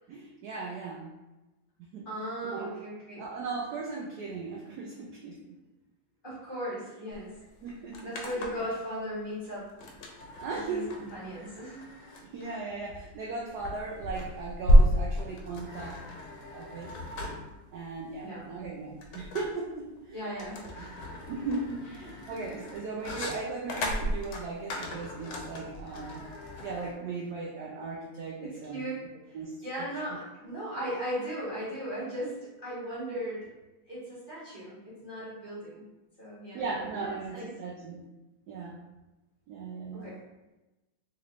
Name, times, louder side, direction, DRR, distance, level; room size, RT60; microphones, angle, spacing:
voice 1, 0.1-1.1 1.9-2.1 2.5-2.7 3.1-5.5 7.6-8.7 10.4-10.9 12.2-16.0 16.5-16.9 17.7-20.3 20.8-20.9 21.3-26.3 26.6-28.8 29.3-29.5 29.8-29.9 36.5-38.0 38.5-38.8 39.5-40.1, right 4 dB, 75° right, -3 dB, 0.9 m, -37 dB
voice 2, 2.0-3.2 6.2-7.3 8.0-9.6 10.7-10.8 11.1-11.8 18.2-18.4 20.1-21.1 22.0-22.1 28.4-29.0 29.3-29.4 29.6-33.5 33.9-35.8 36.2-36.6 37.0-37.5 39.9-40.2, equal, 30° left, -10 dB, 1.6 m, -37 dB
sound 1, 7.1-7.2 7.5-8.7 9.8-26.9, equal, 90° left, 1.4 m, -31 dB
3.3 x 3.0 x 3.0 m, 1.1 s
omnidirectional pair, 2.1 m